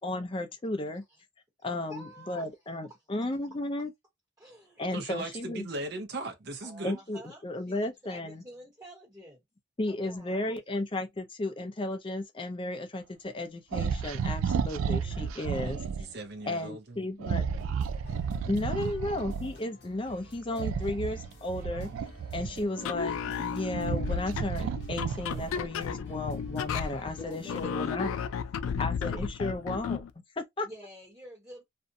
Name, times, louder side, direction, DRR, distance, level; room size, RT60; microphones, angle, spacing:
voice 1, 0.0-1.0 1.6-3.9 4.8-5.7 6.8-8.4 9.8-15.8 16.4-17.5 18.5-21.9 22.3-28.2 28.8-30.0 30.4-30.7, left 2 dB, 25° left, 0.4 m, -34 dB
voice 2, 1.9-2.5 4.4-4.8 6.6-9.4 9.9-10.5 14.5-15.3 27.2-28.2 28.7-28.8 29.1-29.2 30.6-31.6, equal, 15° right, 1.0 m, -49 dB
voice 3, 4.9-7.0 15.6-17.0, right 2 dB, 50° right, 0.7 m, -38 dB
sound 1, 13.7-16.0 17.2-19.5 20.5-22.8 23.4-25.8, right 6 dB, 85° right, 0.3 m, -32 dB
sound 2, 17.6-27.7, equal, 55° left, 0.8 m, -52 dB
sound 3, 22.8-30.1, left 6 dB, 90° left, 0.3 m, -34 dB
2.5 x 2.1 x 2.6 m
head